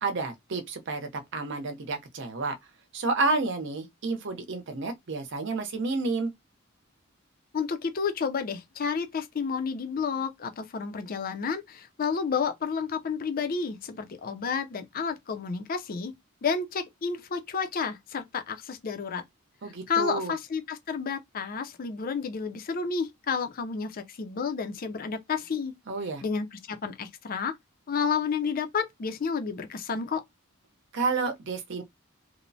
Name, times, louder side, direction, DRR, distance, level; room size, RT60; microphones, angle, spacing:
voice 1, 0.0-2.5 2.9-6.3 19.6-20.3 25.9-26.2 30.9-31.8, right 3 dB, 60° right, 0.6 m, -30 dB
voice 2, 7.5-16.1 16.4-19.2 19.9-25.7 26.2-27.5 27.9-30.2, left 5 dB, 45° left, 0.4 m, -31 dB
3.0 x 2.0 x 2.6 m
head